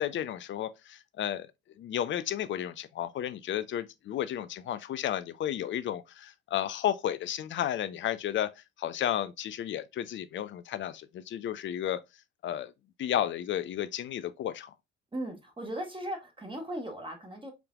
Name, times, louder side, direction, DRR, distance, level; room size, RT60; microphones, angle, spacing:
voice 1, 0.0-1.5 1.8-12.0 12.4-12.7 13.0-14.7, left 11 dB, 35° left, 0.5 m, -33 dB
voice 2, 15.1-17.5, right 1 dB, 15° right, 1.6 m, -37 dB
5.0 x 3.3 x 2.3 m
figure-of-eight pair, 55°, 33 cm